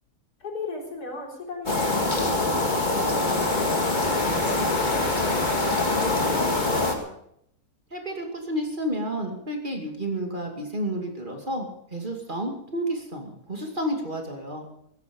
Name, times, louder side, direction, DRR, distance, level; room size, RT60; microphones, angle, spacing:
voice 1, 0.4-2.6 2.9-4.0 4.4-7.1, left 3 dB, 85° left, -1 dB, 4.5 m, -37 dB
sound 1, 1.7-6.9, left 2 dB, 30° left, 2.2 m, -24 dB
voice 2, 7.9-14.6, right 1 dB, 30° right, 2 dB, 2.6 m, -31 dB
16.0 x 14.5 x 5.3 m, 0.74 s
omnidirectional pair, 1.6 m